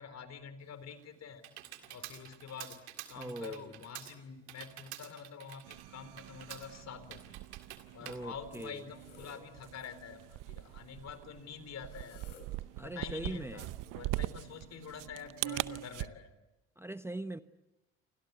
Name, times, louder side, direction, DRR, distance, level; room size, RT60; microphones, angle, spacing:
voice 1, 0.0-1.4 1.8-2.8 3.1-7.4 7.9-10.2 10.5-12.2 12.8-16.3, left 7 dB, 50° left, 3.9 m, -47 dB
Computer keyboard, 0.6-9.2, right 13 dB, 85° right, 2.1 m, -50 dB
voice 2, 3.2-3.6 8.0-8.8 12.8-13.6 16.8-17.4, right 1 dB, 5° right, 0.9 m, -41 dB
sound 1, 5.6-16.1, right 19 dB, 70° right, 0.9 m, -42 dB
sound 2, 8.1-13.4, left 5 dB, 80° left, 5.6 m, -60 dB
29.0 x 25.0 x 8.2 m
hypercardioid pair, 60°, 33 cm